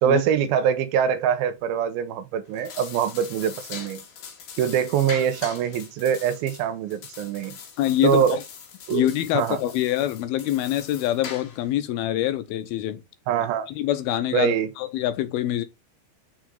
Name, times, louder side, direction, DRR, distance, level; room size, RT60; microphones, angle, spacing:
voice 1, 0.0-4.0 4.6-7.6 8.0-8.4 8.9-9.1 9.3-9.6 13.3-13.7 14.3-14.7, right 8 dB, 90° right, 2.7 m, -23 dB
sound 1, 2.5-11.7, left 6 dB, 65° left, 3.3 m, -41 dB
voice 2, 7.8-8.4 8.9-13.0 13.7-15.7, left 13 dB, 90° left, 2.8 m, -25 dB
6.2 x 4.9 x 3.8 m
omnidirectional pair, 4.2 m